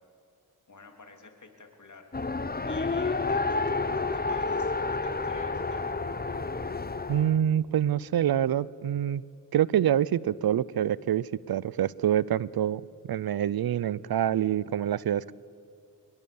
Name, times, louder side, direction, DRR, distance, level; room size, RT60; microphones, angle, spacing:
voice 1, 0.7-5.9, left 3 dB, 50° left, 4 dB, 3.5 m, -49 dB
Race car auto racing, 2.1-7.4, left 3 dB, 25° left, 1.1 m, -30 dB
voice 2, 7.1-9.2 9.5-12.8 13.1-15.3, right 10 dB, 75° right, 22 dB, 0.6 m, -26 dB
26.5 x 21.5 x 7.1 m, 2.4 s
cardioid pair, 55°, 37 cm